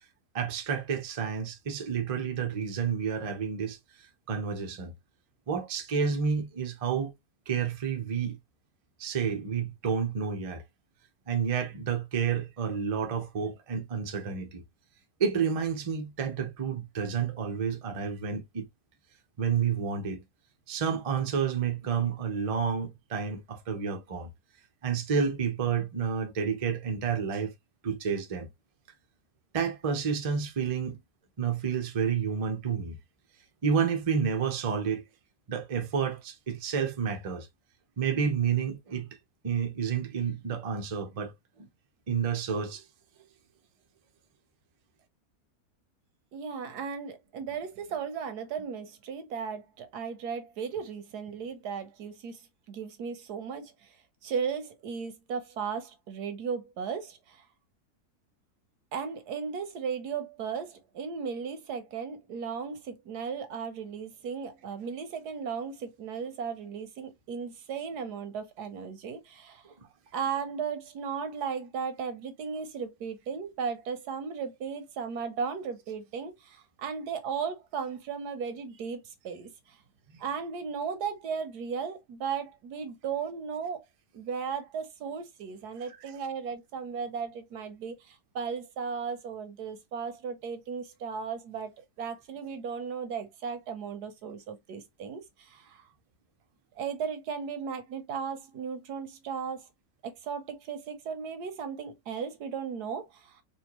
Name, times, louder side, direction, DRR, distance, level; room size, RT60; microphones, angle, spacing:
voice 1, 0.3-4.9 5.5-7.1 7.5-8.4 9.0-10.6 11.3-14.6 15.2-18.6 19.4-20.2 20.7-24.3 24.8-27.5 27.8-28.5 29.5-31.0 31.4-33.0 33.6-35.0 35.5-37.5 38.0-39.1 39.4-41.3 41.6-41.7 42.1-42.8 85.9-86.1, right 6 dB, 35° right, 0.5 m, -30 dB
voice 2, 46.3-54.0 54.2-57.5 58.9-69.7 70.1-79.8 80.2-83.8 84.1-95.9 96.8-99.7 100.0-103.4, right 6 dB, 85° right, 1.5 m, -36 dB
4.3 x 2.5 x 2.9 m
omnidirectional pair, 1.6 m